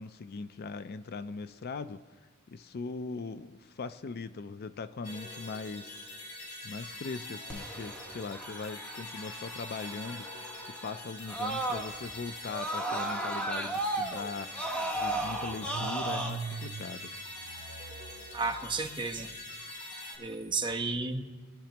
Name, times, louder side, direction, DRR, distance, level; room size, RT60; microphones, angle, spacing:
voice 1, 0.0-2.0 2.5-6.0 6.6-17.1, left 4 dB, 50° left, 13 dB, 0.4 m, -40 dB
sound 1, 5.0-20.2, left 1 dB, 70° left, 4.7 m, -44 dB
Screaming, 7.5-12.1 12.4-16.3, right 1 dB, 5° left, 1.3 m, -35 dB
Car / Engine starting, 13.7-13.8 14.1-19.4, right 5 dB, 85° right, 0.5 m, -44 dB
voice 2, 18.3-19.3 20.2-21.2, right 3 dB, 25° right, 4 dB, 1.0 m, -32 dB
25.0 x 11.5 x 2.9 m, 1.4 s
head